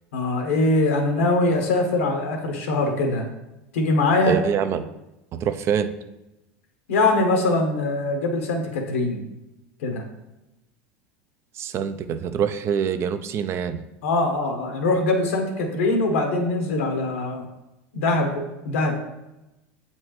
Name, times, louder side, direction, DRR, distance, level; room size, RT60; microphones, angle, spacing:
voice 1, 0.1-3.3 3.7-4.3 6.9-9.3 9.8-10.1 14.0-17.4 17.9-18.9, left 2 dB, 85° left, 3 dB, 1.2 m, -22 dB
voice 2, 4.3-4.9 5.3-5.9 11.5-13.8, right 8 dB, 40° right, 10 dB, 0.4 m, -25 dB
7.5 x 4.4 x 3.1 m, 0.95 s
supercardioid pair, 110°, 7 cm